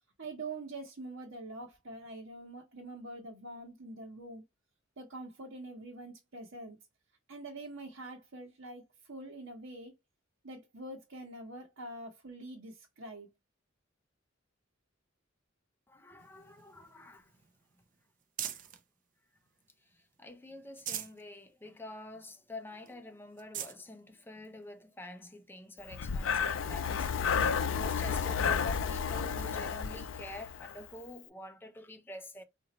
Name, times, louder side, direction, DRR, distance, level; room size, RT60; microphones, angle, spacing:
voice 1, 0.2-4.4 5.0-6.8 7.3-9.9 10.4-13.3, right 2 dB, 80° right, 1.0 m, -45 dB
voice 2, 15.9-17.3 18.5-18.6 20.2-32.4, left 2 dB, 10° left, 0.6 m, -47 dB
sound 1, 16.2-18.9 19.4-20.1 20.5-21.2 21.7-21.8 22.1-22.2 22.9-23.0 23.3-23.8 24.6-24.7 26.5-26.6, right 10 dB, 45° right, 0.5 m, -43 dB
Breathing, 25.9-30.8, left 6 dB, 80° left, 0.4 m, -32 dB
4.0 x 2.5 x 2.9 m
head